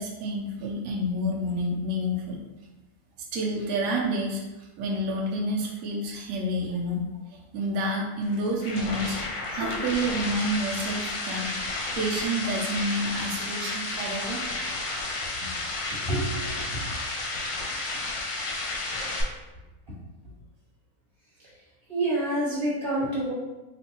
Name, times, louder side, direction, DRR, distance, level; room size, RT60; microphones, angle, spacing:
voice 1, 0.0-2.4 3.3-7.0 7.3-9.2 9.5-11.5 11.9-14.4, equal, 70° right, -2 dB, 1.1 m, -29 dB
sound 1, 8.2-19.2, left 2 dB, 65° left, 0.9 m, -32 dB
voice 2, 15.9-16.8 18.9-19.4 21.9-23.3, right 1 dB, 20° right, -9 dB, 1.2 m, -28 dB
3.8 x 2.5 x 2.9 m, 1.1 s
omnidirectional pair, 1.7 m